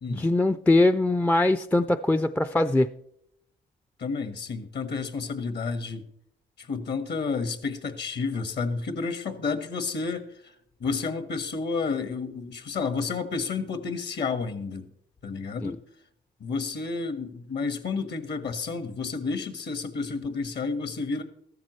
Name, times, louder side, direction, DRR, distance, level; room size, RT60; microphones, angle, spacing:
voice 1, 0.1-2.9 15.6-15.8, left 2 dB, 10° left, 11 dB, 0.4 m, -22 dB
voice 2, 4.0-6.0 6.6-10.5 10.8-14.9 15.2-15.8 16.4-21.2, left 4 dB, 60° left, 10 dB, 1.6 m, -31 dB
14.0 x 13.0 x 3.1 m, 0.73 s
cardioid pair, 90°, 20 cm